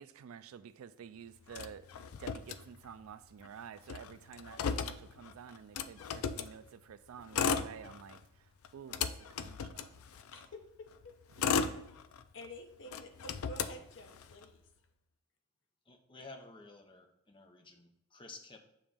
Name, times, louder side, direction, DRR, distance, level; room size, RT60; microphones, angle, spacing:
voice 1, 0.0-1.9 2.2-10.0 11.4-11.6, right 7 dB, 85° right, 0.3 m, -51 dB
Motor vehicle (road), 1.5-3.1 3.4-3.5 3.8-6.5 7.2-8.2 8.6-10.5 11.0-12.5 12.9-14.5, left 6 dB, 85° left, 0.4 m, -36 dB
voice 2, 10.3-11.8 12.3-14.6, left 1 dB, 60° left, 0.8 m, -51 dB
voice 3, 15.9-18.6, left 3 dB, 25° left, 0.6 m, -52 dB
7.0 x 3.0 x 4.9 m
head